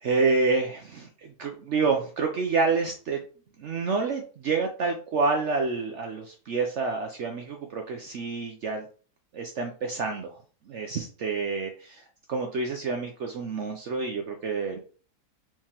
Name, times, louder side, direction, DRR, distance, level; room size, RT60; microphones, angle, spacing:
voice 1, 0.0-3.2 3.6-8.9 9.3-10.4 10.7-12.0 12.3-14.8, right 4 dB, 65° right, 3 dB, 0.7 m, -28 dB
4.6 x 3.5 x 2.9 m, 0.39 s
omnidirectional pair, 1.7 m